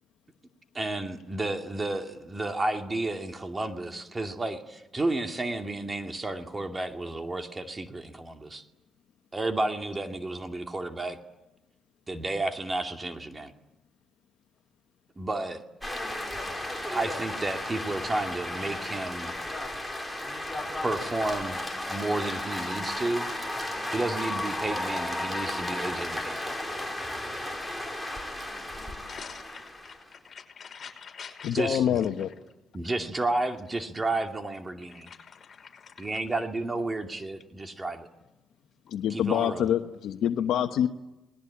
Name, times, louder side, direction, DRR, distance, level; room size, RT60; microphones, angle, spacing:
voice 1, 0.7-8.6 9.3-11.2 12.1-13.5 15.2-15.6 16.9-19.3 20.8-21.6 21.9-23.3 23.9-26.5 31.5-32.0 32.7-35.1 36.0-38.1 39.1-39.7, right 2 dB, 25° right, 5 dB, 2.3 m, -31 dB
sound 1, 15.8-30.1, left 1 dB, ahead, 4.7 m, -34 dB
voice 2, 28.4-31.6 34.9-36.3, left 6 dB, 45° left, 3 dB, 5.4 m, -46 dB
voice 3, 31.4-32.3 38.9-40.9, left 9 dB, 75° left, 7 dB, 1.1 m, -26 dB
29.5 x 20.5 x 8.7 m, 0.98 s
cardioid pair, 90°, 0 cm